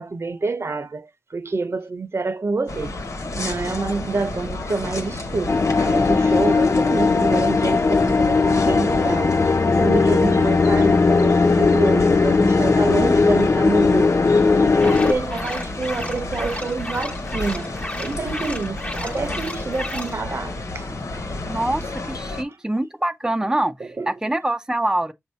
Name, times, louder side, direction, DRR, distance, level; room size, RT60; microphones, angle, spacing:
voice 1, 0.0-3.0 3.4-20.9 22.3-22.6 23.8-24.1, right 3 dB, 55° right, 0.8 m, -27 dB
sound 1, 2.7-22.4, left 2 dB, 80° left, 1.4 m, -31 dB
sound 2, 5.5-15.1, left 4 dB, 55° left, 0.4 m, -18 dB
sound 3, 14.8-20.1, left 1 dB, 25° left, 1.2 m, -34 dB
voice 2, 21.5-25.1, right 1 dB, 10° right, 0.6 m, -25 dB
7.0 x 2.7 x 5.5 m
wide cardioid pair, 75°, 5 cm